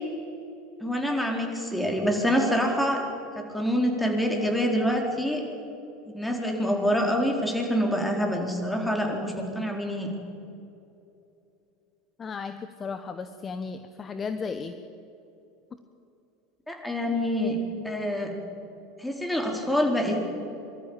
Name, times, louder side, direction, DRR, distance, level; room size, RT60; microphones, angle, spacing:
voice 1, 0.8-3.0 3.4-5.4 6.1-10.1 16.7-17.6 17.8-18.3 19.0-20.2, equal, 5° left, 1 dB, 4.5 m, -26 dB
voice 2, 12.2-14.7, left 5 dB, 30° left, 9 dB, 1.1 m, -34 dB
24.0 x 13.0 x 9.1 m, 2.8 s
hypercardioid pair, 85°, 0 cm